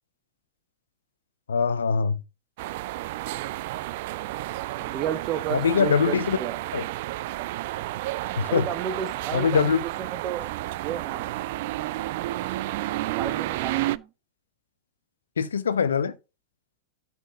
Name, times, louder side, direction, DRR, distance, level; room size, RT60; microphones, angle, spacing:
voice 1, 1.5-2.2 5.5-6.4 6.7-6.8 8.4-8.6 9.3-9.8 15.4-16.1, left 6 dB, 70° left, 0.9 m, -23 dB
sound 1, 2.6-14.0, right 17 dB, 50° right, 0.4 m, -31 dB
voice 2, 4.8-6.6 8.5-10.5 10.8-11.3 13.2-14.1, right 9 dB, 35° right, 1.2 m, -32 dB
13.0 x 4.3 x 3.8 m
figure-of-eight pair, 90°, 0 cm